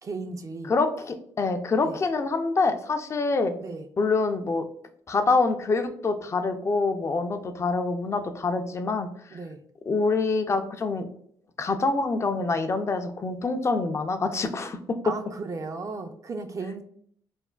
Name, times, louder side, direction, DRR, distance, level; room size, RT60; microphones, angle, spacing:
voice 1, 0.0-0.7 1.8-2.0 3.6-3.9 9.3-9.6 15.0-16.8, right 3 dB, 40° right, 0.4 m, -35 dB
voice 2, 0.7-3.5 4.0-4.6 5.1-9.4 9.9-11.1 11.6-15.0, left 3 dB, 35° left, 0.4 m, -26 dB
3.3 x 2.1 x 2.3 m
supercardioid pair, 65°, 9 cm